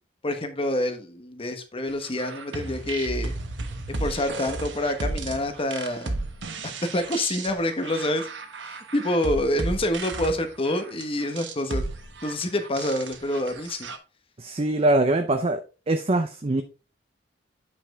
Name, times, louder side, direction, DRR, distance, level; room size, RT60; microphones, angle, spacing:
voice 1, 0.2-3.3 3.9-6.2 6.9-8.3 8.6-11.8 12.2-13.9, left 1 dB, 30° left, 1.1 m, -27 dB
sound 1, 2.0-14.0, right 2 dB, 75° right, 1.1 m, -34 dB
voice 2, 14.4-15.6 15.9-16.6, right 2 dB, 30° right, 0.6 m, -22 dB
8.6 x 5.3 x 3.6 m
head